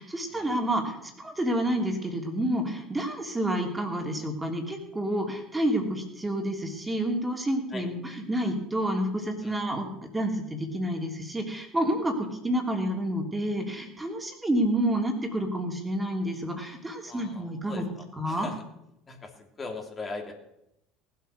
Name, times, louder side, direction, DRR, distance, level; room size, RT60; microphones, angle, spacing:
voice 1, 0.0-17.9 18.2-18.5, right 1 dB, 15° right, 3 dB, 3.2 m, -29 dB
voice 2, 17.0-18.6 19.1-20.3, left 3 dB, 30° left, 2 dB, 2.9 m, -40 dB
18.5 x 8.0 x 6.4 m, 0.81 s
hypercardioid pair, 70°, 0 cm